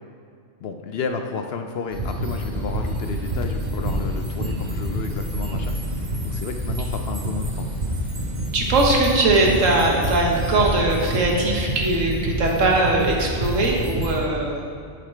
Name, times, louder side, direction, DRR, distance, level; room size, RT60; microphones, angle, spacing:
voice 1, 0.6-5.8 6.2-7.7, left 5 dB, 65° left, 5 dB, 0.7 m, -31 dB
sound 1, 1.9-14.2, equal, 35° right, 1.3 m, -27 dB
voice 2, 8.5-14.7, right 2 dB, 80° right, -1 dB, 1.6 m, -20 dB
7.4 x 6.9 x 4.5 m, 2.3 s
omnidirectional pair, 1.3 m